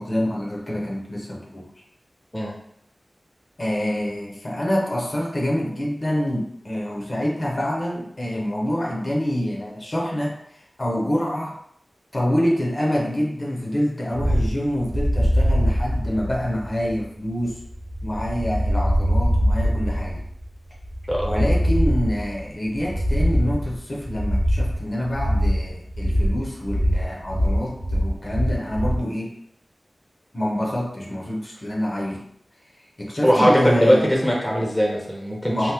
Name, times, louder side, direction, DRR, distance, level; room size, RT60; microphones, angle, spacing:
voice 1, 0.0-1.7 3.6-11.5 12.1-17.5 18.0-20.2 21.2-29.3 30.3-32.3 33.0-34.1 35.5-35.7, left 1 dB, 40° left, -2 dB, 0.7 m, -26 dB
sound 1, 14.1-29.0, equal, 60° right, 0.5 m, -23 dB
voice 2, 33.2-35.7, equal, 5° left, -3 dB, 0.6 m, -20 dB
2.9 x 2.0 x 3.4 m, 0.72 s
wide cardioid pair, 85°, 0 cm